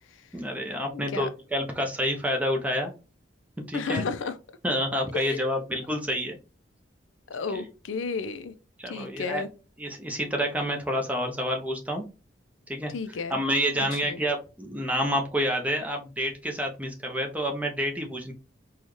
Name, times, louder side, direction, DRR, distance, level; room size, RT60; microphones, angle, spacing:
voice 1, 0.3-2.9 3.7-4.1 4.6-6.4 7.5-7.6 8.8-9.4 9.8-12.0 12.7-12.9 13.3-18.3, equal, 10° right, 0.7 m, -28 dB
voice 2, 0.9-1.3 3.7-4.4 5.1-5.5 7.3-8.5 8.9-9.5 12.9-13.4 13.8-14.2, left 4 dB, 85° left, 0.5 m, -33 dB
4.1 x 2.3 x 3.1 m
head